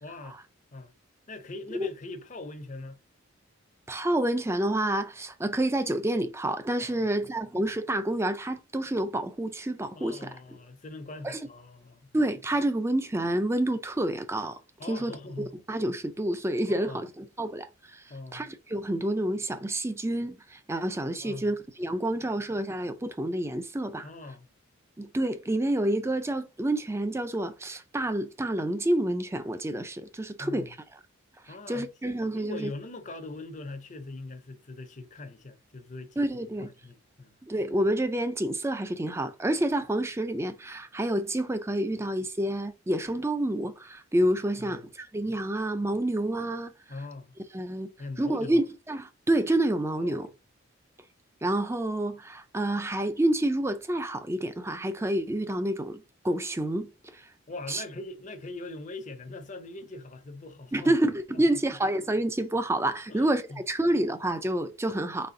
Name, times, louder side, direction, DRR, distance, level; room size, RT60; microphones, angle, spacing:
voice 1, 0.0-0.4 0.7-0.9 1.3-3.0 6.8-7.2 9.9-12.1 14.8-15.5 16.7-17.0 18.1-18.5 21.2-21.5 24.0-24.5 30.4-30.7 31.5-31.9 32.3-37.4 44.6-44.9 46.9-47.3 48.0-48.6 50.0-50.3 57.5-61.0 61.3-61.6 63.1-63.6, left 2 dB, 35° left, 0.6 m, -42 dB
voice 2, 3.9-10.3 11.2-11.4 12.1-14.6 14.9-15.1 15.7-18.0 18.3-24.1 25.0-30.8 31.7-32.7 36.2-36.7 37.4-46.7 47.5-47.9 48.2-50.3 51.4-57.3 57.7-57.8 60.7-65.3, right 1 dB, 10° right, 0.4 m, -28 dB
4.2 x 3.2 x 3.8 m
head